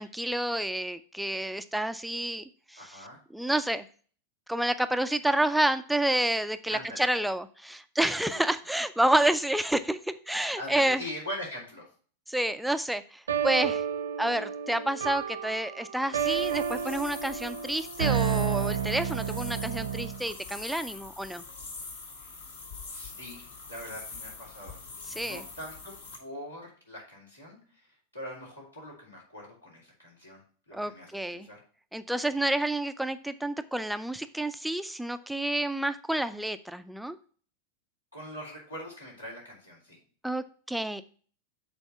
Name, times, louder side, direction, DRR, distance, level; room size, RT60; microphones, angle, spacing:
voice 1, 0.0-2.4 2.7-2.8 3.3-3.8 4.5-11.0 12.3-13.8 14.2-21.4 25.1-25.4 30.7-31.5 31.9-37.2 40.2-41.0, right 1 dB, ahead, 11 dB, 0.3 m, -29 dB
voice 2, 2.8-3.2 6.7-7.1 10.5-11.9 22.1-22.3 22.9-24.8 25.1-27.8 28.1-30.4 30.7-31.6 38.1-40.0, equal, 85° left, -4 dB, 3.4 m, -42 dB
sound 1, 13.3-20.2, right 8 dB, 70° right, 0.7 m, -31 dB
sound 2, 16.2-26.2, left 4 dB, 65° left, 1.7 m, -44 dB
7.0 x 4.0 x 5.5 m, 0.43 s
figure-of-eight pair, 90°, 0 cm